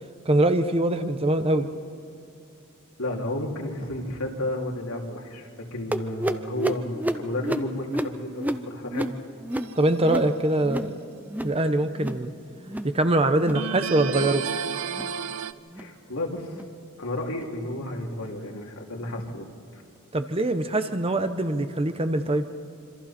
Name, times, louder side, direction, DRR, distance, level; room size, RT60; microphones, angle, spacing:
voice 1, 0.2-1.7 9.7-10.9 11.4-12.3 12.8-14.4 20.1-22.5, right 1 dB, 25° right, 9 dB, 0.9 m, -23 dB
voice 2, 3.0-9.1 15.8-16.5 17.0-19.8, left 1 dB, 80° left, 0 dB, 3.0 m, -32 dB
sound 1, 5.9-11.0 11.2-11.6 11.9-12.3 12.6-13.0 13.3-13.7 14.1-14.4 14.9-15.2 15.7-15.9 16.5-16.7 17.3-17.5 18.2-18.3 19.1-19.2, right 1 dB, 10° right, 0.6 m, -31 dB
sound 2, 9.5-10.2 13.5-15.5, right 6 dB, 65° right, 0.6 m, -31 dB
26.5 x 25.5 x 4.4 m, 2.5 s
head